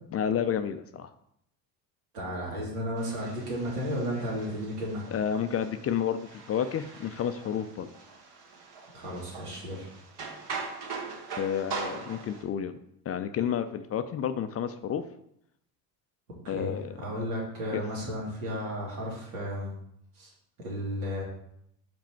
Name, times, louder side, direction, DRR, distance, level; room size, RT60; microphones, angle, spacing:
voice 1, 0.1-1.1 5.1-7.9 11.4-12.8 13.1-15.0 16.5-16.9 17.7-17.8, left 8 dB, 35° left, 10 dB, 0.4 m, -30 dB
voice 2, 2.1-5.0 8.9-9.9 16.4-19.7 20.2-20.3 20.6-21.2, equal, 85° right, -4 dB, 2.5 m, -33 dB
sound 1, 3.0-12.4, right 4 dB, 60° right, 1.5 m, -42 dB
5.0 x 4.6 x 4.5 m, 0.73 s
supercardioid pair, 80°, 46 cm